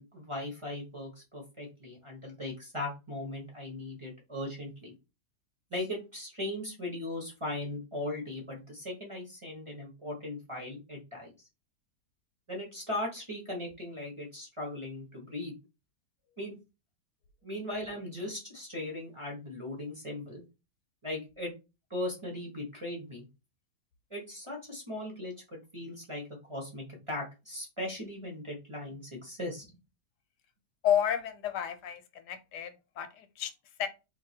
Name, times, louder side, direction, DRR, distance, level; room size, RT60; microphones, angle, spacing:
voice 1, 0.0-4.9 5.7-11.3 12.5-15.5 16.4-16.6 17.4-20.4 21.0-21.5 21.9-23.3 24.1-29.8, left 1 dB, 20° right, 0.9 m, -38 dB
voice 2, 30.8-33.5 33.8-33.9, left 10 dB, 85° left, 1.3 m, -31 dB
2.8 x 2.6 x 4.2 m
omnidirectional pair, 1.7 m